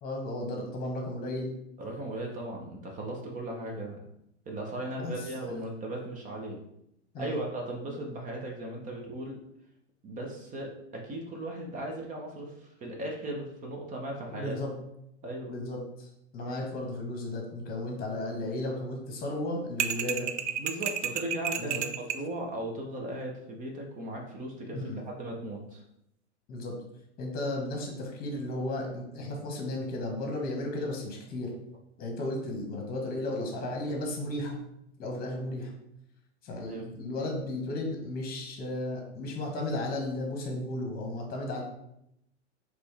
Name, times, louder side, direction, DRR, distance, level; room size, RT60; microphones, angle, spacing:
voice 1, 0.0-1.5 5.0-5.2 7.1-7.4 14.3-14.7 15.5-16.1 16.3-20.3 21.6-21.8 24.7-25.0 26.5-26.7 27.2-31.5 32.0-34.6 35.0-35.7 36.4-41.6, left 1 dB, 25° left, 1 dB, 1.3 m, -34 dB
voice 2, 1.8-4.0 4.5-6.6 7.2-9.4 10.0-14.6 15.2-15.5 20.6-25.8 36.6-36.9, right 1 dB, 20° right, 0 dB, 0.8 m, -37 dB
sound 1, 19.8-22.3, right 9 dB, 80° right, 0.5 m, -31 dB
4.1 x 3.1 x 3.4 m, 0.79 s
hypercardioid pair, 120°, 35 cm